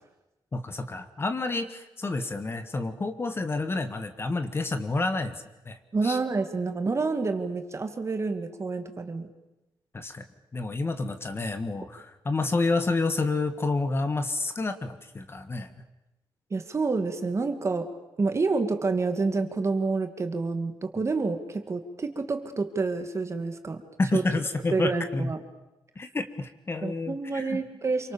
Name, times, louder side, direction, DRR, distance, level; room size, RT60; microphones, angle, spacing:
voice 1, 0.5-5.8 6.0-6.2 9.9-10.2 10.5-15.7 24.0-25.3 26.0-27.6, left 3 dB, 30° left, 9 dB, 1.6 m, -29 dB
voice 2, 5.9-9.3 16.5-17.9 18.2-23.8 24.1-24.2 24.7-25.4 26.8-28.1, right 3 dB, 35° right, 7 dB, 2.4 m, -28 dB
27.5 x 24.5 x 7.1 m, 0.95 s
wide cardioid pair, 120°, 9 cm